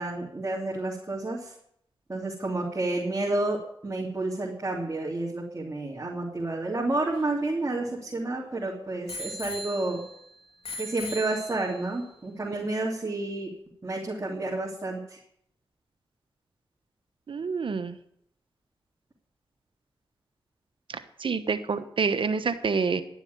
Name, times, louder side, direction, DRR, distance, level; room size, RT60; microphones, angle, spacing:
voice 1, 0.0-1.5 2.1-10.0 10.8-13.5 13.8-15.2, right 2 dB, 30° right, -4 dB, 2.9 m, -30 dB
Bicycle bell, 6.8-8.4 9.1-10.2 10.6-11.9 12.6-12.7, left 1 dB, 75° left, 2.8 m, -40 dB
voice 2, 17.3-18.0 20.9-23.0, right 5 dB, 65° right, 10 dB, 1.1 m, -28 dB
11.5 x 7.1 x 9.4 m, 0.71 s
cardioid pair, 50°, 9 cm